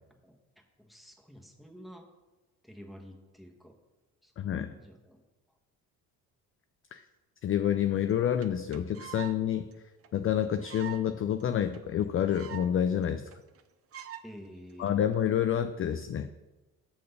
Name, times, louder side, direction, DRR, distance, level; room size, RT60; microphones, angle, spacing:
voice 1, 0.8-2.1 2.6-3.7 4.2-4.3 4.7-5.2 14.2-15.0, equal, ahead, 2 dB, 1.4 m, -49 dB
voice 2, 4.4-4.7 6.9-7.0 7.4-9.6 10.1-13.3 14.8-16.3, left 9 dB, 35° left, 9 dB, 0.4 m, -28 dB
sound 1, 8.1-8.2 8.4-8.5 8.7-9.4 9.7-9.8 10.0-10.1 10.6-11.1 11.4-11.5 11.7-11.8 12.0-12.7 13.0-13.1 13.3-13.6 13.9-14.2 14.9-15.1, right 10 dB, 35° right, 0.6 m, -43 dB
6.5 x 4.3 x 6.6 m, 1.1 s
hypercardioid pair, 60°, 39 cm